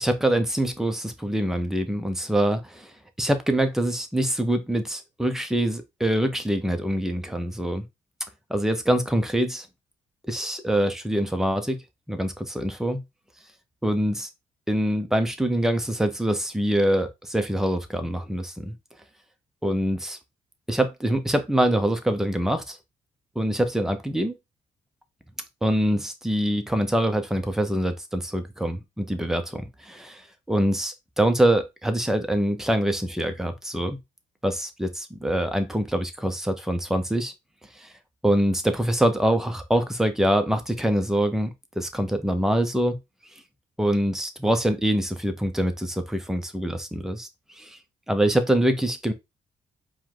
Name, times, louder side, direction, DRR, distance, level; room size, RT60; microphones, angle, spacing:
voice 1, 0.0-7.8 8.5-9.7 10.3-11.8 12.1-13.0 13.8-14.3 14.7-18.7 19.6-20.2 20.7-22.8 23.4-24.3 25.6-34.0 34.4-37.3 37.8-37.9 38.2-43.0 43.8-47.3 47.6-47.8 48.1-49.1, right 1 dB, 5° right, 0.7 m, -24 dB
4.6 x 2.3 x 3.8 m
cardioid pair, 90°, 13 cm